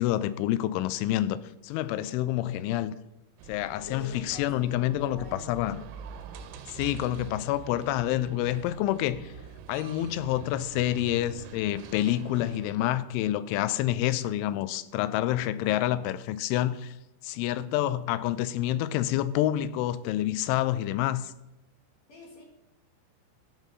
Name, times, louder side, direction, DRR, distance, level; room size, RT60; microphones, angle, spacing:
voice 1, 0.0-1.4 1.6-2.9 3.5-5.8 6.7-9.3 9.7-16.9 17.2-21.3, left 13 dB, 85° left, 2.9 m, -28 dB
sound 1, 3.4-12.7, right 8 dB, 85° right, 3.3 m, -45 dB
voice 2, 3.8-5.5 22.1-22.4, left 3 dB, 50° left, 2.2 m, -45 dB
13.5 x 5.4 x 5.3 m
omnidirectional pair, 5.6 m